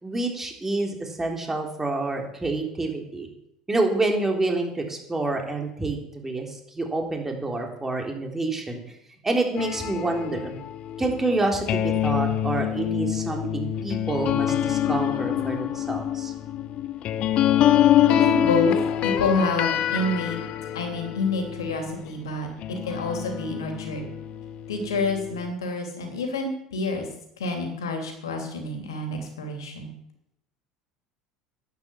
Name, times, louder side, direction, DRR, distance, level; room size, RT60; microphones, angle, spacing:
voice 1, 0.0-3.3 3.7-8.8 9.2-10.5 11.0-16.3, right 2 dB, 15° right, 2 dB, 3.6 m, -28 dB
sound 1, 9.6-22.1 22.6-25.5, left 11 dB, 50° left, 0.9 m, -25 dB
voice 2, 18.2-18.8 19.0-20.4 20.7-24.0 24.7-27.1 27.4-29.9, left 2 dB, 85° left, 4 dB, 3.1 m, -28 dB
11.5 x 10.0 x 7.1 m, 0.79 s
hypercardioid pair, 75°, 2 cm